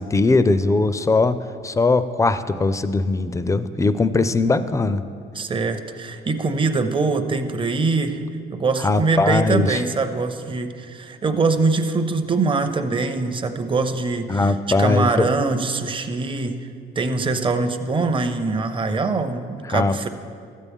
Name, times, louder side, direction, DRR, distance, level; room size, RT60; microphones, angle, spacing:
voice 1, 0.0-5.0 8.8-9.8 14.3-15.3 19.7-20.1, left 3 dB, 15° left, 12 dB, 0.4 m, -20 dB
voice 2, 5.4-8.2 8.5-14.5 14.8-16.7 17.0-20.1, right 3 dB, 25° right, 8 dB, 0.7 m, -23 dB
12.5 x 8.3 x 3.6 m, 2.3 s
cardioid pair, 90°, 20 cm